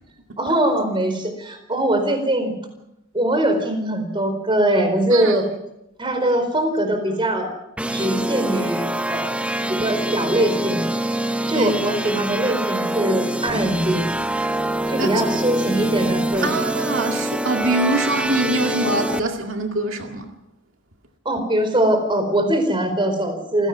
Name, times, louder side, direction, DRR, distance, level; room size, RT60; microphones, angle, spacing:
voice 1, 0.4-2.5 3.1-5.5 6.0-7.5 7.9-9.4 9.7-10.8 11.5-14.1 14.9-16.6 21.2-23.7, right 1 dB, 25° right, 4.5 m, -22 dB
sound 1, 7.8-19.2, right 1 dB, 5° right, 0.7 m, -25 dB
voice 2, 16.4-20.3, right 2 dB, 75° right, 2.1 m, -24 dB
27.5 x 16.5 x 6.2 m
head